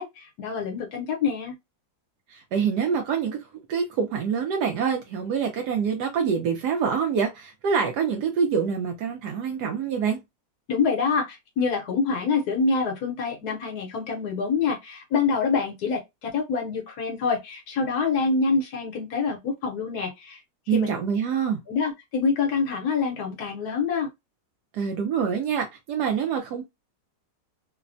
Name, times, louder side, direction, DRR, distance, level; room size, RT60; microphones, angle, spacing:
voice 1, 0.0-1.5 10.7-20.4 20.7-20.9 21.7-24.1, left 5 dB, 65° left, 1.2 m, -26 dB
voice 2, 2.3-10.2 20.7-21.6 24.7-26.6, right 6 dB, 70° right, 1.0 m, -26 dB
3.2 x 2.1 x 2.4 m
omnidirectional pair, 2.0 m